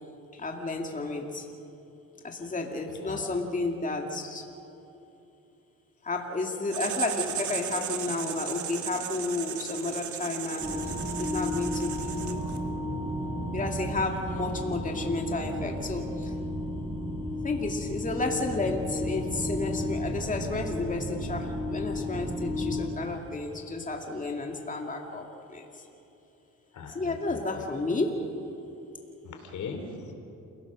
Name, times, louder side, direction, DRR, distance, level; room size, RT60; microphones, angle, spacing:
voice 1, 0.3-1.5 2.2-4.5 6.0-10.7 11.2-12.4 13.5-16.3 17.4-25.8 26.9-28.2, left 3 dB, 25° left, 2 dB, 2.3 m, -32 dB
Writing, 6.7-12.7, right 9 dB, 70° right, 1.9 m, -36 dB
sound 1, 10.6-22.8, left 1 dB, 20° right, 5.2 m, -33 dB
voice 2, 26.7-27.6 29.2-30.1, left 4 dB, 70° left, 4 dB, 3.5 m, -40 dB
28.5 x 17.0 x 6.2 m, 2.8 s
cardioid pair, 90°, 30 cm